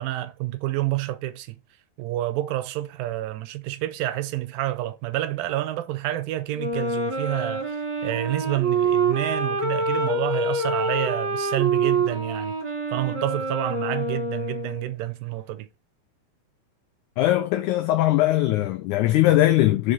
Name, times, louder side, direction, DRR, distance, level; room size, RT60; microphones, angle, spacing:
voice 1, 0.0-1.6 2.0-12.6 12.9-15.7, right 15 dB, 85° right, 2.4 m, -28 dB
Wind instrument woodwind instrument, 6.6-14.9, right 3 dB, 45° right, 2.0 m, -26 dB
voice 2, 17.2-19.9, left 15 dB, 85° left, 1.7 m, -20 dB
5.1 x 4.9 x 3.8 m
omnidirectional pair, 4.1 m